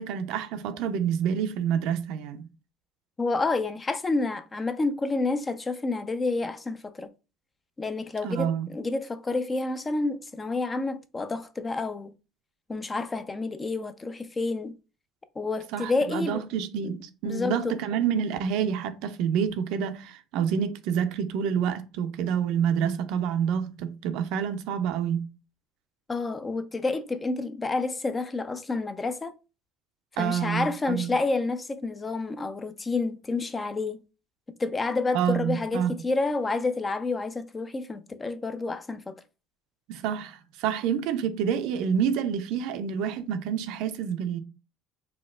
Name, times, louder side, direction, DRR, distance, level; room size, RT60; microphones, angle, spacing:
voice 1, 0.0-2.5 8.2-8.7 15.7-25.3 30.2-31.1 35.1-36.0 39.9-44.4, right 8 dB, 75° right, 0.4 m, -28 dB
voice 2, 3.2-7.1 7.8-12.1 12.7-14.7 15.4-16.4 16.8-16.9 17.2-17.8 26.1-29.3 30.2-34.0 34.6-39.1, left 3 dB, 20° left, 0.4 m, -29 dB
4.3 x 2.3 x 2.3 m
supercardioid pair, 100°, 0 cm